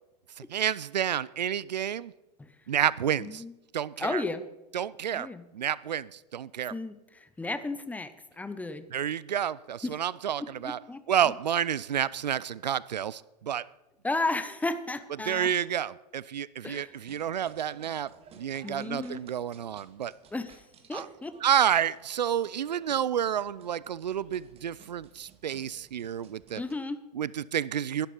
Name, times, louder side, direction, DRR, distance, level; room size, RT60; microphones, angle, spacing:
voice 1, 0.5-2.1 2.7-3.4 3.7-4.2 4.7-5.3 5.5-6.7 8.9-10.8 11.1-13.7 15.2-20.1 20.9-21.1 21.4-26.6 27.1-28.1, right 9 dB, 80° right, 21 dB, 0.5 m, -29 dB
voice 2, 3.2-3.5 4.0-4.4 5.1-5.4 6.7-8.9 9.8-9.9 10.4-11.0 14.0-15.5 16.6-16.9 18.6-19.2 20.3-20.6 20.9-21.4 26.5-27.0, left 2 dB, 5° left, 12 dB, 0.9 m, -34 dB
sound 1, 16.9-26.7, right 6 dB, 30° right, 1.7 m, -57 dB
12.0 x 11.5 x 5.6 m, 0.99 s
hypercardioid pair, 100°, 21 cm